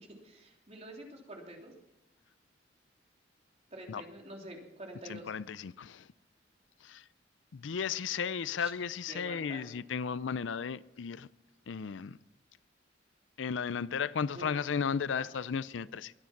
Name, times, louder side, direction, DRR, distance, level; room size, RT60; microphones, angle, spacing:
voice 1, 0.0-1.7 3.7-5.3 8.6-8.7 9.1-9.8 14.3-14.5 15.2-15.3, right 1 dB, 35° right, 3.3 m, -47 dB
voice 2, 5.1-6.1 6.8-7.0 7.5-11.3 11.7-12.2 13.4-16.1, left 6 dB, 85° left, 0.5 m, -34 dB
22.0 x 9.8 x 5.9 m
head